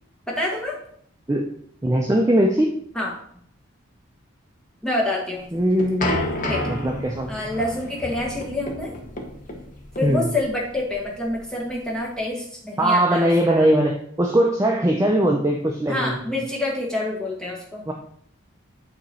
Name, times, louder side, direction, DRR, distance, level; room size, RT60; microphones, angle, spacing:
voice 1, 0.3-0.8 2.9-3.1 4.8-5.5 6.5-6.6 7.3-8.9 10.0-13.7 15.9-17.9, left 1 dB, 5° left, -3 dB, 1.3 m, -27 dB
voice 2, 1.8-2.7 5.5-6.1 6.7-7.3 10.0-10.3 12.8-16.2 17.9-18.0, right 1 dB, 15° right, 1 dB, 0.4 m, -20 dB
sound 1, 5.4-12.2, left 1 dB, 40° left, 1.0 m, -31 dB
8.6 x 3.0 x 4.2 m, 0.65 s
head